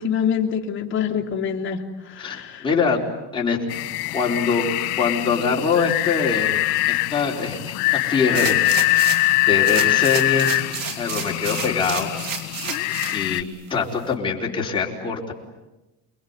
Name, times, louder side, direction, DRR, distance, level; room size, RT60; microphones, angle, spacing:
voice 1, 0.0-2.6, left 7 dB, 30° left, 1 dB, 2.8 m, -25 dB
voice 2, 2.2-3.0 3.3-3.7 4.1-8.6 9.5-10.6 11.0-12.1 13.1-15.3, left 5 dB, 15° left, -2 dB, 4.2 m, -24 dB
sound 1, 3.7-13.4, left 23 dB, 90° left, 1.2 m, -23 dB
sound 2, 8.3-9.3 9.6-13.2 13.7-13.8, right 7 dB, 60° right, 3.8 m, -30 dB
29.0 x 21.0 x 9.7 m, 1.1 s
cardioid pair, 160°, 38 cm